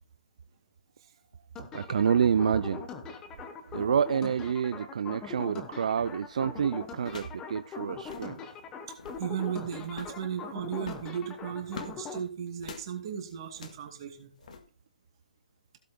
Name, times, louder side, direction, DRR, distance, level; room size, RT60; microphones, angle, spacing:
sound 1, 1.6-12.2, left 5 dB, 10° left, 1.0 m, -41 dB
voice 1, 1.7-2.8 3.7-8.4, right 7 dB, 55° right, 0.3 m, -28 dB
sound 2, 6.1-6.3 7.0-7.4 7.7-7.8 8.0-8.3 8.8-9.3 9.9-10.2 10.8-12.0 12.6-12.9 13.5-13.9 14.4-14.6, left 4 dB, 60° left, 1.7 m, -44 dB
voice 2, 8.9-14.3, right 8 dB, 35° right, 2.3 m, -36 dB
16.5 x 7.6 x 2.2 m
hypercardioid pair, 160°, 4 cm